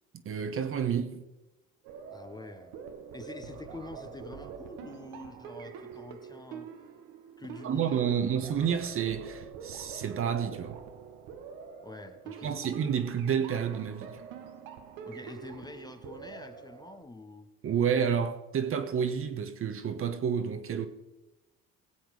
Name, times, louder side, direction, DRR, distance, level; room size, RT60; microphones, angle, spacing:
voice 1, 0.2-1.2 7.6-10.8 12.4-14.2 17.6-20.9, right 7 dB, 45° right, 1.2 m, -30 dB
sound 1, 1.8-17.0, right 7 dB, 85° right, 1.5 m, -45 dB
voice 2, 2.1-2.8 3.1-6.7 7.4-8.5 11.8-12.6 15.1-17.5, left 2 dB, 15° left, 1.1 m, -46 dB
17.0 x 7.8 x 5.0 m
supercardioid pair, 90°, 29 cm